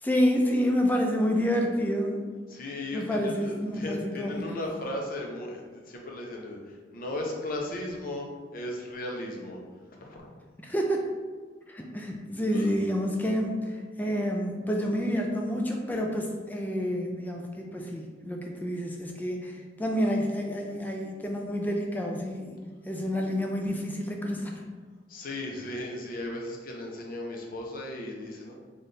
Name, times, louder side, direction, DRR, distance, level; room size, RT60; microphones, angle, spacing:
voice 1, 0.0-2.2 2.9-4.4 10.6-11.1 11.7-22.6 22.9-24.6, equal, 10° left, 1 dB, 0.3 m, -29 dB
voice 2, 2.5-8.3 8.5-9.6 10.0-10.3 12.5-12.7 25.1-28.5, left 1 dB, 50° left, 0 dB, 0.6 m, -36 dB
4.2 x 2.5 x 3.3 m, 1.5 s
head